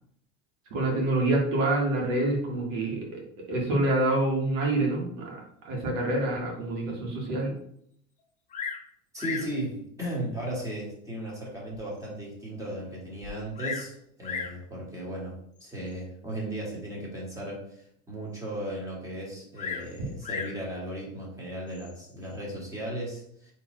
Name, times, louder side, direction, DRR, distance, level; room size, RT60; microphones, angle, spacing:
voice 1, 0.7-3.2 3.5-7.5 20.0-20.1, right 2 dB, 80° right, -1 dB, 1.7 m, -27 dB
Bird vocalization bird call bird song, 8.5-8.9 9.2-9.6 10.4-10.5 11.1-11.2 11.7-11.8 12.0-12.1 13.2-13.9 14.2-14.6 15.6-15.9 19.6-20.6 21.7-22.1, left 6 dB, 20° left, 0.4 m, -36 dB
voice 2, 9.1-23.5, right 1 dB, 10° right, -3 dB, 1.5 m, -36 dB
4.2 x 3.1 x 3.1 m, 0.68 s
supercardioid pair, 125°, 39 cm